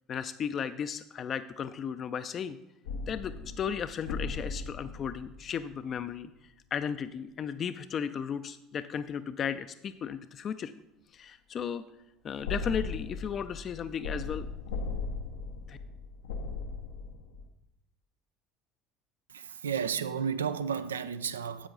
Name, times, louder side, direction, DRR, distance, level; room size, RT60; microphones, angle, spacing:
voice 1, 0.1-2.6 3.1-10.7 11.1-11.8 12.2-14.5 15.7-15.8, left 7 dB, 45° left, 0.4 m, -35 dB
sound 1, 2.8-6.0 12.4-17.5, left 4 dB, 80° left, 0.8 m, -38 dB
voice 2, 19.3-21.7, right 7 dB, 90° right, 0.5 m, -32 dB
10.0 x 7.9 x 3.9 m
hypercardioid pair, 70°, 0 cm